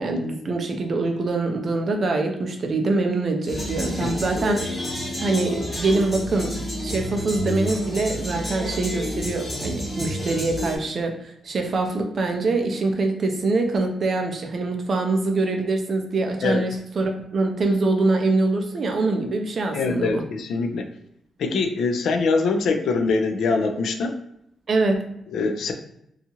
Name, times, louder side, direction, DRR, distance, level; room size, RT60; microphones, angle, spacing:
voice 1, 0.0-4.6 5.2-20.2 24.7-25.0, right 3 dB, 40° right, 4 dB, 0.4 m, -24 dB
sound 1, 3.5-10.8, equal, 20° left, 0.8 m, -30 dB
voice 2, 19.7-20.9 21.4-24.1 25.3-25.7, left 4 dB, 75° left, 6 dB, 0.3 m, -23 dB
2.8 x 2.3 x 2.7 m, 0.77 s
wide cardioid pair, 165°, 0 cm